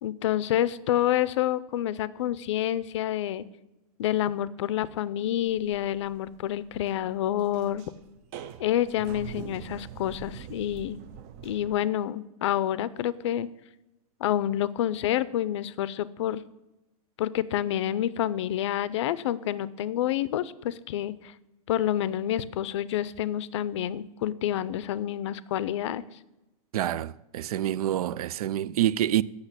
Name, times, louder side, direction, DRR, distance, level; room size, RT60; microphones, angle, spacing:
voice 1, 0.0-3.5 4.0-7.9 8.6-11.0 11.4-13.5 14.2-16.4 17.2-21.3 21.7-26.0, left 12 dB, 50° left, 0.5 m, -28 dB
sound 1, 5.2-11.8, right 9 dB, 25° right, 0.3 m, -44 dB
voice 2, 26.7-29.2, right 12 dB, 90° right, 0.4 m, -27 dB
8.1 x 6.6 x 8.1 m
supercardioid pair, 170°, 19 cm